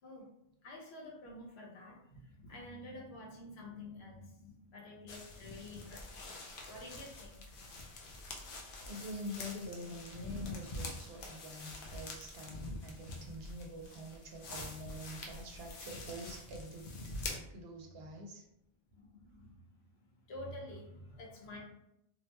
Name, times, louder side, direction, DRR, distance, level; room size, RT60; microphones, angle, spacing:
voice 1, 0.6-6.4 6.7-7.4 18.9-19.7 20.0-21.6, left 1 dB, 90° left, -2 dB, 1.0 m, -49 dB
sound 1, 5.1-17.4, left 2 dB, 60° left, 0.7 m, -46 dB
voice 2, 8.8-16.9 17.2-18.4, left 1 dB, 75° right, 1 dB, 0.8 m, -46 dB
2.5 x 2.1 x 2.9 m, 0.81 s
omnidirectional pair, 1.0 m